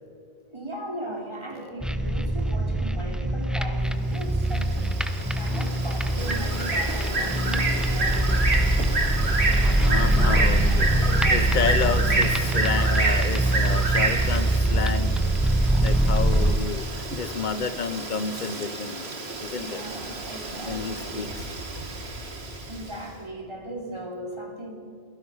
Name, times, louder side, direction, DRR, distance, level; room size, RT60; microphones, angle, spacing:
voice 1, 0.5-8.5 9.6-11.8 19.5-21.3 22.3-24.7, right 1 dB, 25° right, 0 dB, 3.3 m, -38 dB
sound 1, 1.8-16.5, right 1 dB, ahead, 1.0 m, -23 dB
Bird, 4.2-22.9, right 3 dB, 85° right, 2.1 m, -29 dB
voice 2, 9.8-15.2 15.8-16.9 17.2-19.0 19.4-19.8 20.7-21.5, left 6 dB, 50° left, 13 dB, 1.0 m, -30 dB
28.5 x 17.5 x 5.7 m, 2.4 s
omnidirectional pair, 1.0 m